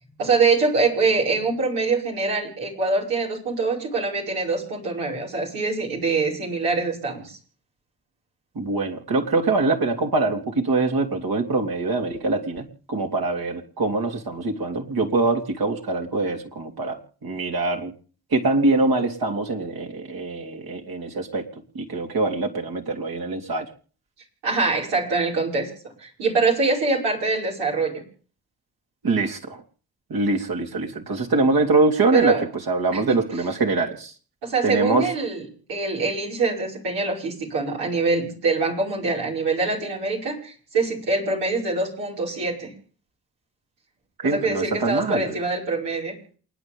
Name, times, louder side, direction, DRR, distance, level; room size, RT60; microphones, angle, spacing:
voice 1, 0.2-7.4 24.4-25.7 26.0-28.0 32.1-32.4 32.9-33.2 34.4-42.7 44.2-46.1, right 3 dB, 80° right, -4 dB, 5.4 m, -24 dB
voice 2, 8.5-17.9 18.3-21.5 21.7-23.6 29.0-29.6 30.1-32.4 32.7-34.1 34.6-35.1 44.2-45.4, right 3 dB, 60° right, 2 dB, 3.4 m, -23 dB
28.5 x 10.0 x 3.6 m, 0.41 s
hypercardioid pair, 40°, 41 cm